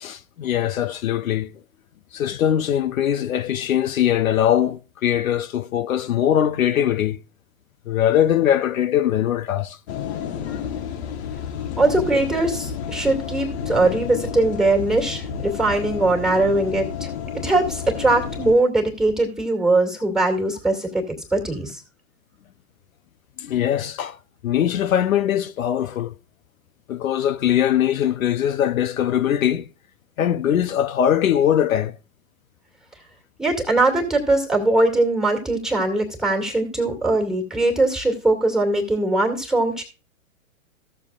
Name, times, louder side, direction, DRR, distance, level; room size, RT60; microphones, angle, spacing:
voice 1, 0.0-1.5 2.1-7.2 7.9-9.8 23.4-24.2 24.4-26.1 26.9-29.7 30.2-31.9, left 10 dB, 70° left, 0.7 m, -21 dB
sound 1, 9.9-18.5, left 7 dB, 50° left, 1.2 m, -31 dB
voice 2, 11.8-17.1 17.4-21.0 21.3-21.8 33.4-39.8, right 2 dB, ahead, 2.1 m, -21 dB
15.5 x 6.9 x 2.4 m
hypercardioid pair, 120°, 42 cm